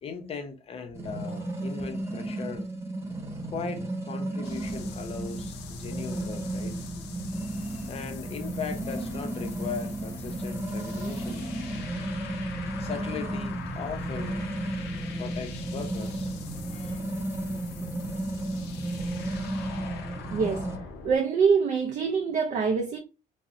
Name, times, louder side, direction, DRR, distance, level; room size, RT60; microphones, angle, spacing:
voice 1, 0.0-2.6 3.4-6.7 7.3-11.5 12.8-14.6 15.2-16.3 16.7-17.1 17.6-17.8 19.0-19.1 19.4-19.9, left 6 dB, 35° left, 0.5 m, -39 dB
sound 1, 0.9-20.8, right 1 dB, 15° right, 0.9 m, -34 dB
sound 2, 4.4-21.2, left 2 dB, 90° left, 0.4 m, -41 dB
sound 3, 12.8-19.7, right 1 dB, 10° left, 1.0 m, -48 dB
voice 2, 20.3-20.6 21.0-23.0, right 5 dB, 45° right, 0.4 m, -24 dB
2.5 x 2.0 x 2.4 m
cardioid pair, 110°, 17 cm